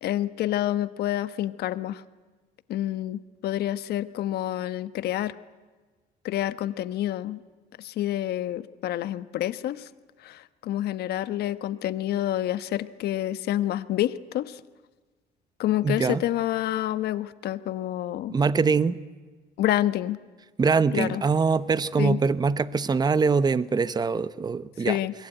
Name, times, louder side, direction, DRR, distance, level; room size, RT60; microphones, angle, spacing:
voice 1, 0.0-2.0 2.7-5.3 6.2-7.4 7.8-9.9 10.2-14.6 15.6-18.3 19.6-20.2 20.9-21.2 22.0-22.2 24.8-25.1, left 13 dB, 70° left, 13 dB, 1.2 m, -28 dB
voice 2, 15.8-16.2 18.3-19.0 20.6-25.0, right 5 dB, 25° right, 15 dB, 0.9 m, -23 dB
28.5 x 22.0 x 9.2 m, 1.3 s
cardioid pair, 110°, 17 cm